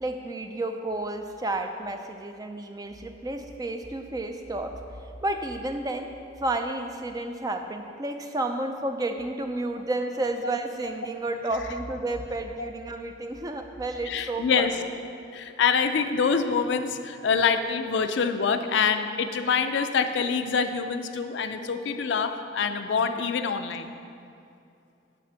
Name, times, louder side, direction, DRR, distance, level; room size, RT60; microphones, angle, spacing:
voice 1, 0.0-4.7 5.2-6.1 6.4-14.7, right 2 dB, 20° right, 5 dB, 0.3 m, -31 dB
voice 2, 14.0-14.8 15.3-23.9, left 6 dB, 65° left, 8 dB, 0.4 m, -25 dB
9.3 x 3.3 x 5.6 m, 2.6 s
head